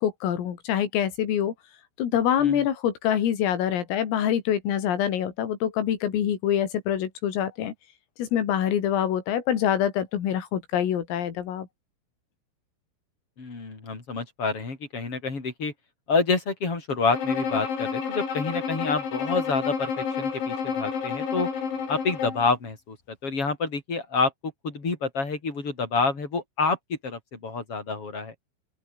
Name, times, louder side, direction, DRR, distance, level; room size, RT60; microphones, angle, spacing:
voice 1, 0.0-1.5 2.0-7.7 8.2-11.7, left 10 dB, 80° left, 5.8 m, -25 dB
voice 2, 13.4-15.7 16.1-21.5 21.9-23.0 23.2-28.3, left 4 dB, 25° left, 6.1 m, -28 dB
Bowed string instrument, 17.1-22.5, left 6 dB, 65° left, 7.7 m, -30 dB
open air
omnidirectional pair, 5.9 m